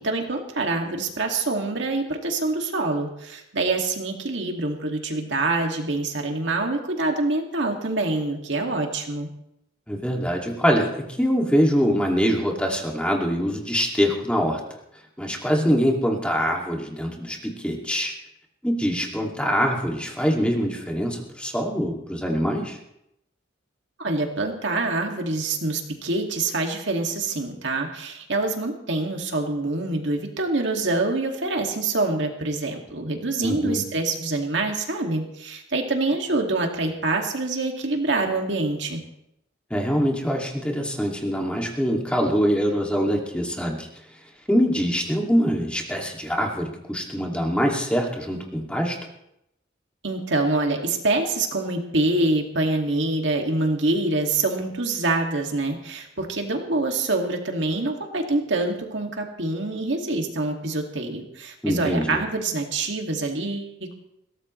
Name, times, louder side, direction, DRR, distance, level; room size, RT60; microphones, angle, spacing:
voice 1, 0.0-9.3 24.0-39.0 50.0-63.9, right 2 dB, 70° right, 2 dB, 2.3 m, -25 dB
voice 2, 9.9-14.6 15.2-18.1 18.6-22.8 33.4-33.8 39.7-43.9 44.5-49.0 61.6-62.2, equal, 5° left, 0 dB, 2.4 m, -24 dB
22.0 x 17.5 x 3.2 m, 0.80 s
head